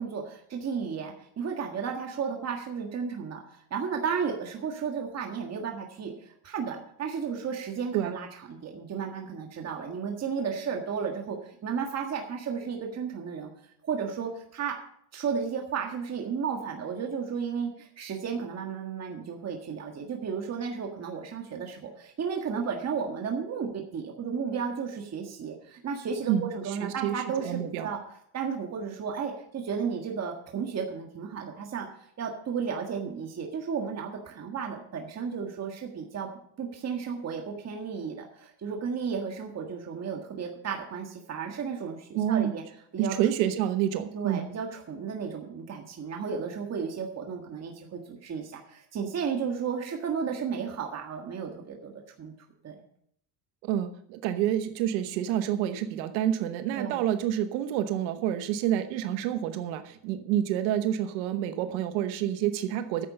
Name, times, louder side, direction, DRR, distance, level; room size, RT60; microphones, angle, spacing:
voice 1, 0.0-3.4 3.7-13.5 13.8-14.7 15.1-28.0 28.3-31.9 32.2-36.3 36.6-42.6 42.9-43.1 44.1-51.9 52.2-52.3 52.6-52.7 56.7-57.0, right 6 dB, 30° right, 2 dB, 1.7 m, -33 dB
voice 2, 26.3-27.9 42.1-42.5 43.0-44.5 53.6-63.1, right 11 dB, 90° right, 9 dB, 1.1 m, -28 dB
10.0 x 8.0 x 6.6 m, 0.68 s
cardioid pair, 120°, 50 cm